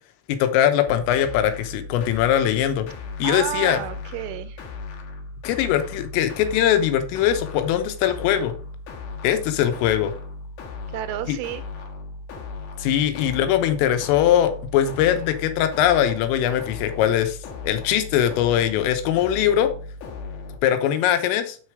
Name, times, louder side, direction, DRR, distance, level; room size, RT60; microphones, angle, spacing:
voice 1, 0.3-2.9 3.2-3.8 5.5-8.5 9.2-10.1 11.3-11.4 12.8-17.4 17.6-19.7 20.6-21.6, left 10 dB, 85° left, 3.5 m, -21 dB
sound 1, 0.9-20.6, left 3 dB, 60° left, 2.8 m, -37 dB
voice 2, 3.2-4.6 10.9-11.6, right 12 dB, 85° right, 2.8 m, -31 dB
7.9 x 6.6 x 4.9 m
omnidirectional pair, 5.9 m